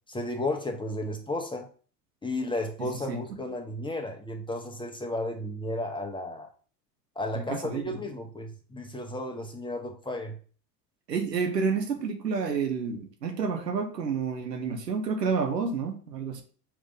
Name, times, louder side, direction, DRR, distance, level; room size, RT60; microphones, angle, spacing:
voice 1, 0.1-1.7 2.2-6.5 7.1-10.4, left 1 dB, 10° left, 1.3 m, -33 dB
voice 2, 2.8-3.2 7.3-8.0 11.1-16.4, right 5 dB, 85° right, 1.4 m, -30 dB
5.9 x 3.4 x 5.4 m
hypercardioid pair, 85°, 48 cm